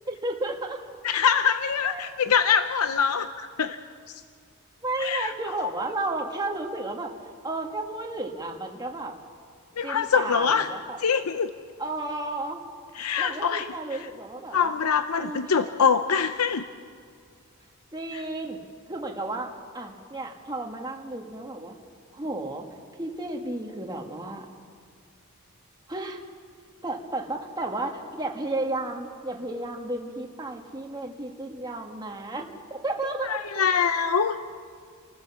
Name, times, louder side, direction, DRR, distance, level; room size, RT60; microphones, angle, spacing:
voice 1, 0.1-0.8 1.8-2.1 4.8-7.1 7.4-9.1 9.8-11.0 11.8-12.6 13.2-14.7 15.2-15.7 17.9-18.6 18.9-21.7 22.1-22.7 23.0-24.5 25.9-26.2 26.8-33.4, right 2 dB, 20° right, 1 dB, 1.7 m, -33 dB
voice 2, 1.0-3.8 4.1-4.2 5.0-5.3 9.8-10.7 11.0-11.5 13.0-13.7 14.5-16.6 33.2-34.4, left 6 dB, 85° left, 10 dB, 0.7 m, -24 dB
27.5 x 14.5 x 7.0 m, 2.1 s
head